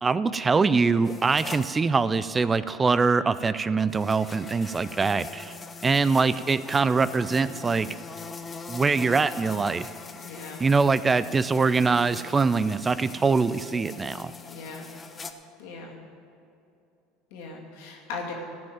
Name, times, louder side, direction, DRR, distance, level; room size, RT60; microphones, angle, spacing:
voice 1, 0.0-5.5 5.8-7.9 8.7-9.9 10.6-14.3, right 4 dB, 25° right, 15 dB, 0.4 m, -23 dB
sound 1, 1.0-1.7 3.9-15.3, left 4 dB, 25° left, 0.8 m, -42 dB
voice 2, 10.2-10.7 14.5-14.9 15.6-16.0 17.3-18.3, left 4 dB, 75° left, -1 dB, 2.2 m, -38 dB
14.0 x 5.3 x 8.9 m, 2.6 s
hypercardioid pair, 90°, 0 cm